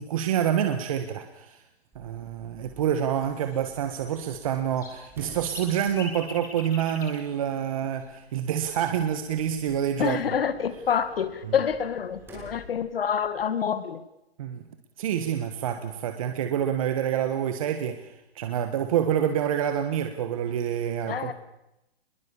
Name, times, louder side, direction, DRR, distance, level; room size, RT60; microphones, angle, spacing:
voice 1, 0.0-1.6 1.9-10.2 14.4-14.6 15.0-21.3, right 9 dB, 35° right, 7 dB, 1.4 m, -27 dB
sound 1, 1.3-1.6 3.0-4.1 4.5-8.3 10.6-12.3 13.0-13.1 13.4-13.8, left 3 dB, 10° left, 2.9 m, -45 dB
Sliding door, 1.9-13.4, right 1 dB, 5° right, 7.0 m, -51 dB
voice 2, 10.0-14.0 21.1-21.3, left 7 dB, 65° left, 13 dB, 2.2 m, -27 dB
25.0 x 22.0 x 7.0 m, 0.88 s
hypercardioid pair, 170°, 31 cm